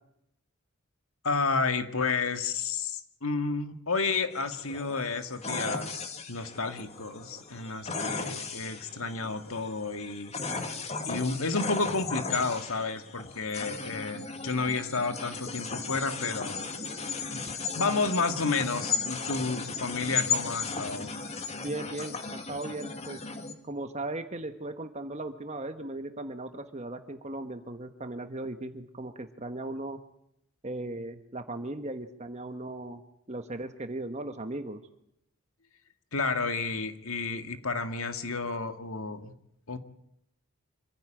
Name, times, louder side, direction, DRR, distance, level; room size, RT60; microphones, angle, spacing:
voice 1, 1.2-10.3 11.1-16.6 17.3-17.4 17.7-21.2 36.1-39.3 39.7-39.8, left 4 dB, 75° left, 8 dB, 2.1 m, -31 dB
sound 1, 4.3-23.5, left 4 dB, 30° left, 2.3 m, -36 dB
voice 2, 21.6-23.2 23.6-30.0 30.6-33.0 33.3-34.8, right 2 dB, 30° right, 8 dB, 1.4 m, -37 dB
26.5 x 16.0 x 9.0 m, 0.78 s
head